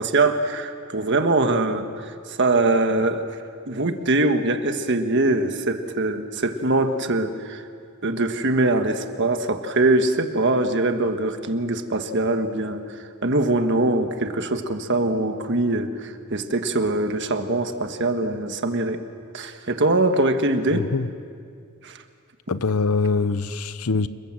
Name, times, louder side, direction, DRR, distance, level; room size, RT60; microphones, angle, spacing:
voice 1, 0.0-3.2 3.7-7.6 8.0-12.8 13.2-19.0 19.3-20.9 21.8-22.0, right 2 dB, 55° right, 7 dB, 1.6 m, -22 dB
voice 2, 20.7-21.1 22.5-24.1, left 4 dB, 75° left, 14 dB, 0.8 m, -23 dB
29.0 x 21.0 x 7.7 m, 2.3 s
head